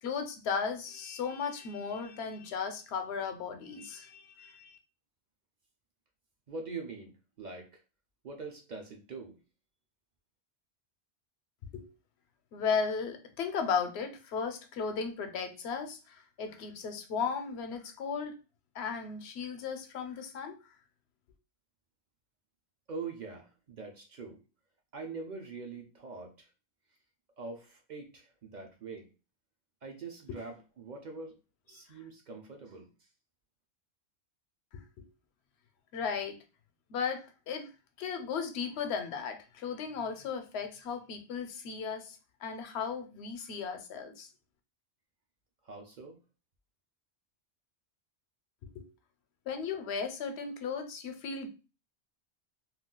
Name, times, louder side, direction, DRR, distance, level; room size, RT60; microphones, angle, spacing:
voice 1, 0.0-4.8 11.7-11.9 12.5-18.4 18.7-20.5 34.7-35.0 35.9-36.4 36.9-37.7 38.0-44.3 48.7-48.9 49.5-51.5, left 6 dB, 80° left, 7 dB, 0.8 m, -36 dB
voice 2, 6.5-7.8 8.2-9.4 22.9-24.4 24.9-26.5 27.4-29.1 29.8-31.4 31.7-32.9 45.6-46.2, right 4 dB, 55° right, 2 dB, 0.6 m, -43 dB
2.4 x 2.3 x 3.6 m, 0.31 s
omnidirectional pair, 1.1 m